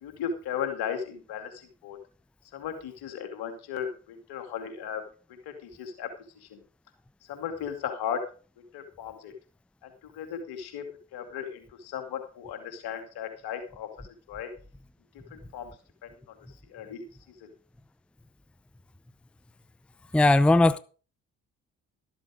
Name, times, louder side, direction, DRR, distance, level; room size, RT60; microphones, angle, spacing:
voice 1, 0.0-2.0 2.5-5.0 5.6-6.1 6.4-6.6 7.3-8.2 8.7-9.3 9.8-14.5 15.3-15.7 16.0-16.1 16.7-17.1 17.4-17.5, left 8 dB, 75° left, 2.6 m, -36 dB
voice 2, 20.1-20.8, left 2 dB, 5° left, 0.6 m, -18 dB
13.0 x 7.6 x 5.0 m
hypercardioid pair, 50°, 38 cm